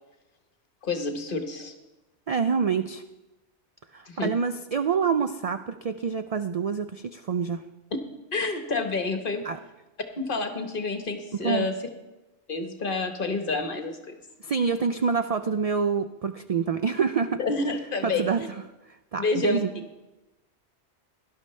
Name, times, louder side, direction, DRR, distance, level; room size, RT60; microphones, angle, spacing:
voice 1, 0.8-1.7 4.1-4.3 8.3-9.4 10.2-11.7 12.5-14.0 17.4-18.5 19.2-19.6, left 3 dB, 50° left, 6 dB, 1.3 m, -28 dB
voice 2, 2.3-3.0 3.9-7.7 9.4-9.6 11.4-11.7 14.4-17.4 18.0-18.5 19.1-19.9, right 6 dB, 75° right, 9 dB, 0.3 m, -26 dB
17.0 x 11.5 x 3.2 m, 1.0 s
omnidirectional pair, 1.2 m